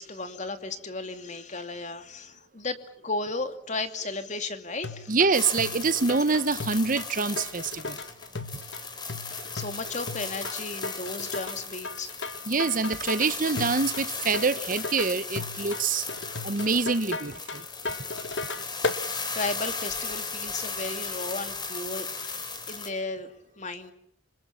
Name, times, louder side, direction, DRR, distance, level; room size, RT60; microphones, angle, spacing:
voice 1, 0.0-2.8 3.0-5.1 9.1-12.1 19.0-22.4 22.7-23.3 23.6-23.9, left 3 dB, 40° left, 2.6 m, -35 dB
sound 1, 4.8-19.0, left 3 dB, 80° left, 1.7 m, -36 dB
voice 2, 5.1-8.0 12.5-16.1 16.4-17.6, right 4 dB, 45° right, 0.9 m, -26 dB
sound 2, 5.3-22.9, left 4 dB, 25° left, 4.2 m, -36 dB
28.0 x 27.0 x 5.9 m
head